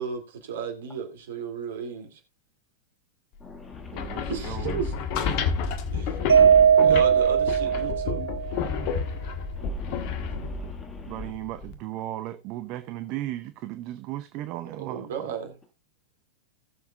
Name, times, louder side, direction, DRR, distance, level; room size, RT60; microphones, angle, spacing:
voice 1, 0.0-2.2 4.3-4.9 5.9-6.3 6.8-8.2 10.3-10.5 14.4-14.5 14.8-15.5, right 6 dB, 60° right, 2.6 m, -34 dB
voice 2, 3.4-4.1 5.3-5.4 6.4-6.7 7.8-7.9 9.6-11.3, left 4 dB, 15° left, 1.9 m, -46 dB
sound 1, 3.7-11.7, left 5 dB, 45° left, 1.4 m, -30 dB
voice 3, 3.9-4.8 6.4-7.0 11.0-15.3, right 14 dB, 40° right, 0.7 m, -36 dB
Mallet percussion, 6.3-8.6, right 8 dB, 75° right, 0.5 m, -19 dB
18.5 x 7.2 x 2.4 m
figure-of-eight pair, 95°, 0 cm